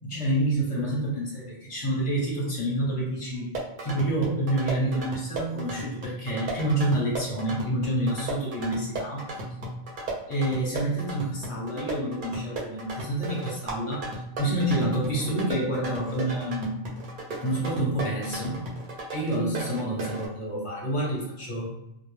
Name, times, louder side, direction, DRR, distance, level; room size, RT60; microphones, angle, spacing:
voice 1, 0.0-3.5 3.8-9.3 10.3-14.1 14.4-16.8 17.4-18.8 19.1-21.7, right 1 dB, 30° left, -5 dB, 0.7 m, -28 dB
sound 1, 3.3-20.3, right 2 dB, 55° right, 0.6 m, -36 dB
2.2 x 2.0 x 3.0 m, 0.85 s
omnidirectional pair, 1.3 m